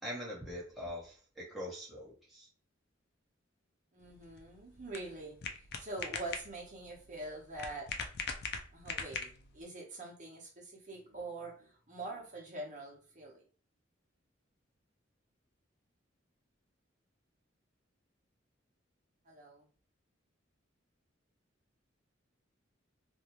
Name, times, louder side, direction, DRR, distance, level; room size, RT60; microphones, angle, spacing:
voice 1, 0.0-2.5, equal, ahead, -7 dB, 1.0 m, -43 dB
voice 2, 3.9-7.9 8.7-13.4 19.2-19.7, right 2 dB, 40° right, -2 dB, 0.9 m, -45 dB
sound 1, 4.0-9.6, left 5 dB, 55° left, 0.4 m, -42 dB
2.6 x 2.3 x 3.0 m, 0.40 s
head